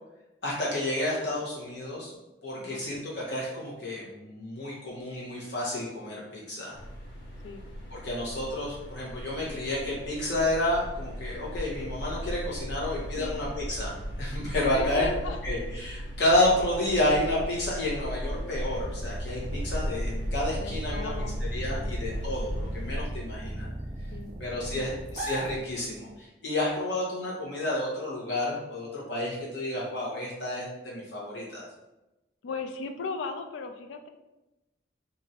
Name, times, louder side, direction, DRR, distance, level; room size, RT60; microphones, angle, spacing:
voice 1, 0.4-2.1 2.4-6.8 7.9-15.1 15.4-21.1 21.5-23.7 24.4-31.6, left 1 dB, 70° left, -6 dB, 1.1 m, -30 dB
sound 1, 6.7-23.1, equal, 50° left, 1.2 m, -36 dB
voice 2, 14.7-15.4 20.6-21.4 21.7-22.0 24.1-24.7 32.4-34.1, left 4 dB, 90° left, 6 dB, 0.3 m, -37 dB
sound 2, 18.7-26.2, right 1 dB, 35° right, 0.4 m, -37 dB
2.8 x 2.5 x 2.8 m, 1.0 s
head